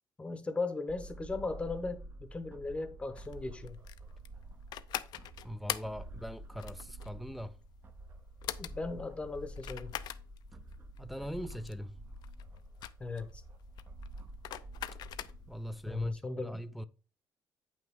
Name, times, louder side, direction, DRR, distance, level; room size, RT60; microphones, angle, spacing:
voice 1, 0.2-3.8 8.6-9.9 13.0-13.4 15.8-16.6, left 3 dB, 15° left, 0.9 m, -37 dB
sound 1, 0.9-16.1, right 1 dB, 30° right, 0.7 m, -49 dB
sound 2, 3.2-15.7, left 12 dB, 70° left, 0.5 m, -42 dB
voice 2, 5.4-7.6 11.0-12.0 15.5-16.8, equal, ahead, 0.4 m, -41 dB
8.7 x 5.9 x 3.6 m
cardioid pair, 155°, 8 cm